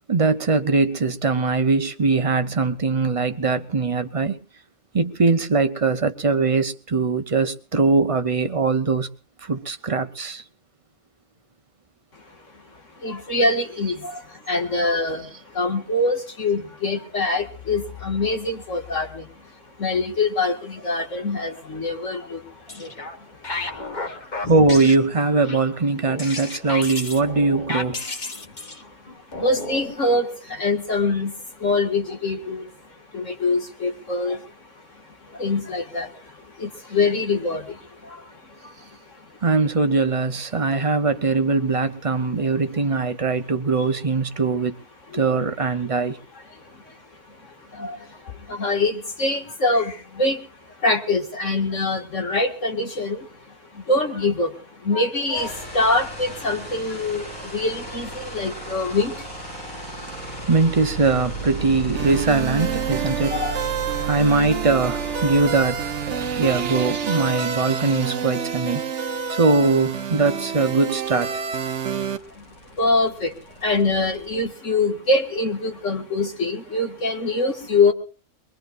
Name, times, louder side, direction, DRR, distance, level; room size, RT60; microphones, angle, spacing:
voice 1, 0.1-4.4 4.9-9.1 9.5-10.4 13.8-13.9 24.5-28.0 39.4-44.7 45.1-46.2 60.5-63.4 64.1-65.8 66.1-68.8 69.3-71.3, right 3 dB, 30° right, 0.8 m, -21 dB
voice 2, 12.1-24.5 28.3-39.4 45.1-45.3 46.5-60.5 63.2-64.1 66.2-66.4 69.3-69.4 71.7-77.9, left 2 dB, 65° left, 2.4 m, -25 dB
sound 1, 22.5-23.2 23.4-29.9, left 3 dB, 35° left, 1.5 m, -32 dB
sound 2, 55.3-67.6 69.7-69.8 70.0-74.4, right 4 dB, 90° left, 8.0 m, -34 dB
sound 3, 62.0-72.2, right 6 dB, 60° right, 1.2 m, -28 dB
23.5 x 22.0 x 2.6 m
omnidirectional pair, 1.4 m